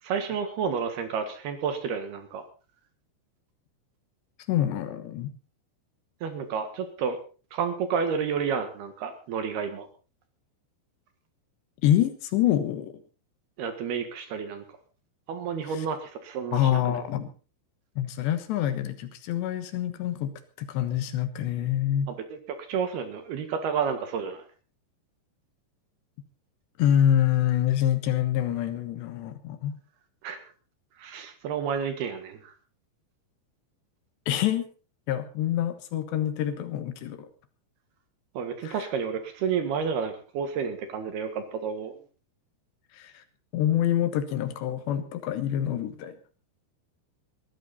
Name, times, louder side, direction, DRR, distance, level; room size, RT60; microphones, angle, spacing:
voice 1, 0.0-2.4 6.2-7.2 7.5-9.9 13.6-14.8 15.3-17.0 22.1-24.4 30.2-30.4 31.0-32.5 38.3-42.0, right 6 dB, 65° right, 8 dB, 3.3 m, -30 dB
voice 2, 4.5-5.3 11.8-13.0 16.5-17.3 18.0-20.3 20.6-22.1 26.8-29.8 34.3-34.7 35.1-37.3 38.6-38.8 42.9-43.2 43.5-46.2, left 11 dB, 70° left, 10 dB, 3.3 m, -26 dB
19.5 x 14.0 x 4.1 m, 0.37 s
omnidirectional pair, 5.4 m